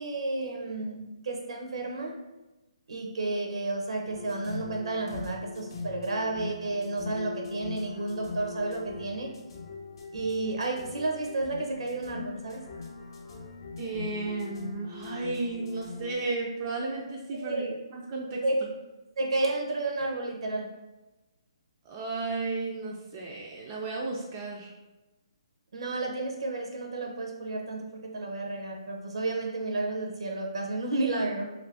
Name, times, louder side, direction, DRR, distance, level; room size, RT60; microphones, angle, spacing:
voice 1, 0.0-2.1 2.9-9.3 10.1-12.6 17.4-17.8 18.4-18.6 19.2-20.7 25.7-31.4, right 2 dB, 70° right, 1 dB, 0.6 m, -31 dB
sound 1, 4.0-16.2, left 4 dB, 50° left, 0.6 m, -41 dB
voice 2, 13.8-18.4 21.8-24.7, right 3 dB, 25° right, -2 dB, 0.3 m, -34 dB
2.6 x 2.5 x 3.3 m, 1.0 s
hypercardioid pair, 160°, 3 cm